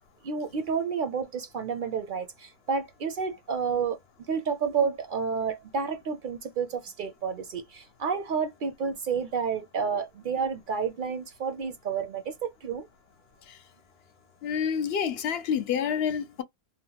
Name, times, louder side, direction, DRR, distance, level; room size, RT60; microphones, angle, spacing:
voice 1, 0.2-4.0 4.3-12.9, right 6 dB, 60° right, 0.6 m, -30 dB
voice 2, 14.4-16.4, left 7 dB, 70° left, 0.8 m, -28 dB
2.8 x 2.1 x 2.8 m
omnidirectional pair, 1.1 m